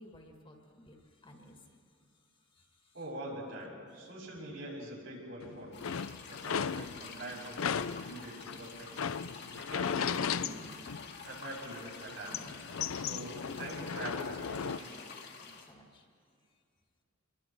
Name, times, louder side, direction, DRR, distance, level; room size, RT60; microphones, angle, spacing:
voice 1, 0.0-2.3 2.5-2.9 15.1-16.1, left 1 dB, 25° left, 2 dB, 2.0 m, -57 dB
voice 2, 2.9-6.0 6.3-7.7 8.0-10.8 11.2-12.5 12.9-15.0, right 1 dB, 65° right, -4 dB, 7.4 m, -44 dB
sound 1, 5.4-7.2 7.6-11.4 11.7-14.8, left 7 dB, 85° left, 0.5 m, -36 dB
sound 2, 5.7-15.7, left 5 dB, 55° left, 2.1 m, -49 dB
28.0 x 22.5 x 4.6 m, 2.4 s
head